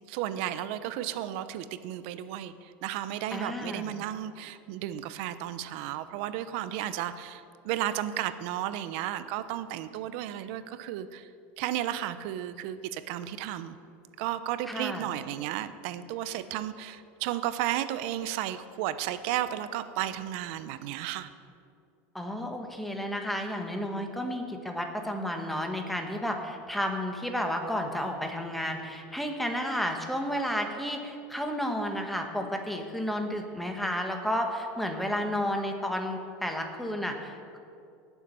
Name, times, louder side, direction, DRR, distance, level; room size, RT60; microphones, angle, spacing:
voice 1, 0.1-11.3 11.6-13.8 14.2-21.3, right 12 dB, 60° right, 12 dB, 0.7 m, -33 dB
voice 2, 3.3-3.9 14.7-15.1 22.1-37.6, equal, ahead, 3 dB, 1.1 m, -32 dB
18.5 x 7.1 x 5.5 m, 2.4 s
cardioid pair, 160°, 6 cm